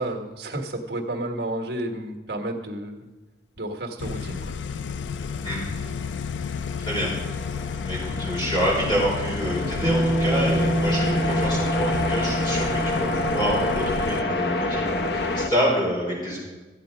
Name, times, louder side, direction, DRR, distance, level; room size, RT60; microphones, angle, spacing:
voice 1, 0.0-3.1 3.6-4.6, right 1 dB, 65° right, 2 dB, 1.5 m, -31 dB
sound 1, 4.0-14.2, left 6 dB, 90° left, 0.4 m, -32 dB
sound 2, 5.3-15.5, left 2 dB, 65° left, 0.8 m, -29 dB
voice 2, 6.8-7.1 7.8-16.4, equal, 25° left, -5 dB, 4.9 m, -27 dB
Bass guitar, 9.8-14.3, right 1 dB, 10° right, 0.5 m, -27 dB
14.0 x 8.3 x 5.1 m, 1.2 s
head